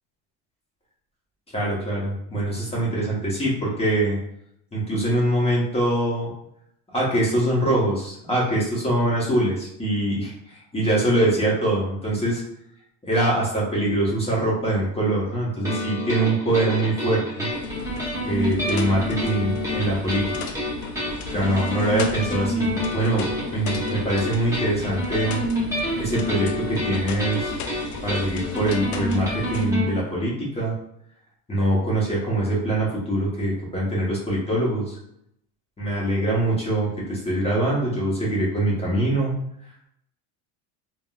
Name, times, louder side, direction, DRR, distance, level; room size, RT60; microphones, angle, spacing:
voice 1, 1.5-4.2 4.7-6.3 6.9-12.4 13.0-17.5 18.2-20.5 21.3-25.4 26.0-27.5 28.0-30.7 31.5-35.0 35.8-39.3, right 1 dB, 15° left, -5 dB, 1.0 m, -23 dB
sound 1, 15.6-29.9, equal, 5° right, 0.9 m, -28 dB
sound 2, 17.5-29.7, left 5 dB, 45° left, 0.4 m, -36 dB
3.6 x 2.3 x 2.3 m, 0.75 s
cardioid pair, 125°, 44 cm